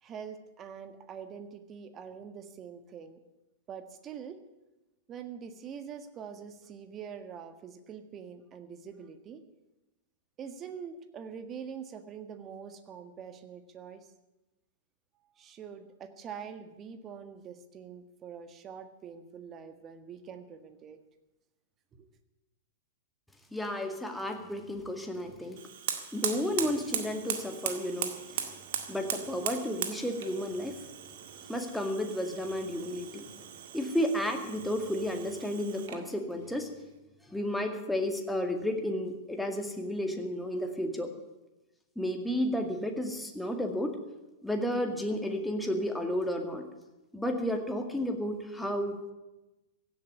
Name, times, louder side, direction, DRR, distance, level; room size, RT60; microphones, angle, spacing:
voice 1, 0.0-3.2 3.7-4.4 5.1-9.4 10.4-14.1 15.4-21.0 21.9-22.1, right 7 dB, 30° right, 9 dB, 1.6 m, -44 dB
voice 2, 23.5-25.6 26.1-28.5 28.9-30.8 31.5-33.3 33.7-36.7 37.3-41.1 42.0-44.0 44.4-46.7 47.1-49.1, left 1 dB, 5° left, 3 dB, 2.1 m, -32 dB
Fire, 25.5-36.1, right 9 dB, 60° right, 1.8 m, -39 dB
16.0 x 8.4 x 9.7 m, 1.0 s
figure-of-eight pair, 100°, 0 cm